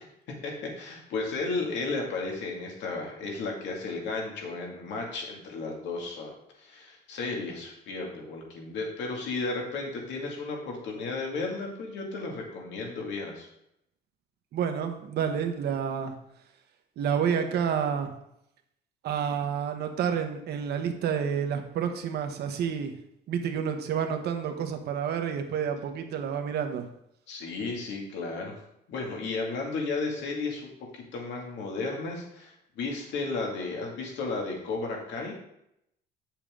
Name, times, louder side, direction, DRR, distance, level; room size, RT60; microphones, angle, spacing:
voice 1, 0.3-13.5 27.3-28.6 28.9-35.3, left 3 dB, 75° left, 0 dB, 2.2 m, -34 dB
voice 2, 14.5-16.1 17.0-18.1 19.0-22.9 23.3-26.8, right 7 dB, 60° right, 6 dB, 1.1 m, -29 dB
8.8 x 7.2 x 3.7 m, 0.79 s
cardioid pair, 155°, 19 cm